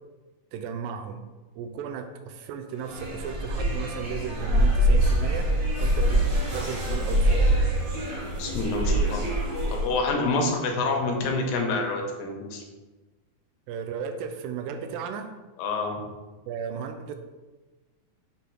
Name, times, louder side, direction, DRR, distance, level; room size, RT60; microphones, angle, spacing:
voice 1, 0.5-1.3 1.6-5.5 5.8-6.2 6.5-7.5 13.7-15.3 16.5-17.1, right 7 dB, 80° right, 7 dB, 2.2 m, -35 dB
sound 1, 2.8-10.0, right 1 dB, 40° right, 1.8 m, -24 dB
voice 2, 8.4-9.3 9.7-12.6 15.6-16.0, left 3 dB, 80° left, 3 dB, 2.4 m, -27 dB
7.0 x 3.5 x 4.6 m, 1.2 s
omnidirectional pair, 4.2 m